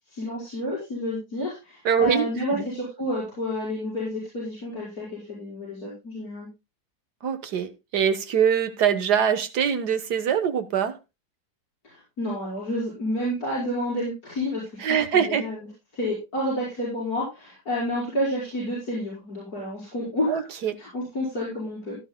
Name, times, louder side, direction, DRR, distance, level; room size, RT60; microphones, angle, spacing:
voice 1, 0.1-6.5 11.8-14.8 15.1-15.7 15.9-20.4 20.8-22.0, left 1 dB, 65° left, 6.0 m, -30 dB
voice 2, 1.9-2.7 7.2-11.0 14.8-15.4 20.3-20.8, right 8 dB, 80° right, 1.8 m, -23 dB
17.0 x 12.0 x 2.2 m
omnidirectional pair, 1.7 m